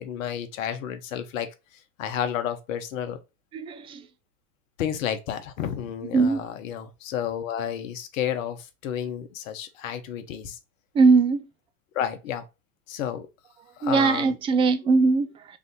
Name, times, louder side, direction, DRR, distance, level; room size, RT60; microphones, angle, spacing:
voice 1, 0.0-1.5 2.0-3.2 4.8-10.6 11.9-12.4 12.9-13.3 13.8-14.4 14.8-15.0, left 9 dB, 60° left, 0.9 m, -31 dB
voice 2, 3.5-4.1 6.1-6.5 10.9-11.5 13.8-15.6, right 4 dB, 15° right, 0.3 m, -21 dB
3.4 x 2.5 x 3.8 m
hypercardioid pair, 85°, 44 cm